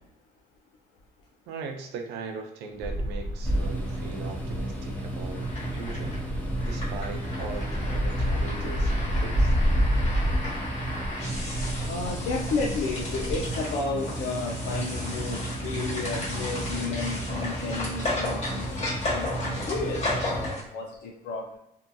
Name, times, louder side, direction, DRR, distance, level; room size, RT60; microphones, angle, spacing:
voice 1, 1.5-9.5, right 5 dB, 85° right, 4 dB, 0.5 m, -40 dB
sound 1, 2.8-13.6, equal, 20° right, 0.5 m, -29 dB
sound 2, 3.4-20.5, right 1 dB, 10° left, 0.8 m, -34 dB
sound 3, 5.3-20.6, left 2 dB, 40° left, 1.3 m, -35 dB
voice 2, 11.9-21.6, left 3 dB, 80° left, -1 dB, 0.4 m, -33 dB
2.7 x 2.2 x 2.5 m, 0.83 s
cardioid pair, 110°, 17 cm